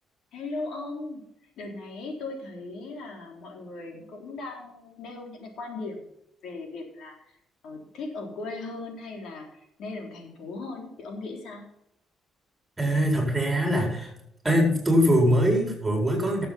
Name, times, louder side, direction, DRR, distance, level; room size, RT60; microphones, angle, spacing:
voice 1, 0.3-1.3 1.6-6.1 6.4-7.1 7.6-11.7, left 3 dB, 75° left, 1 dB, 3.9 m, -38 dB
voice 2, 12.8-14.1 14.4-16.5, equal, 15° right, 1 dB, 4.5 m, -22 dB
13.0 x 7.7 x 5.8 m, 0.78 s
cardioid pair, 90°, 0 cm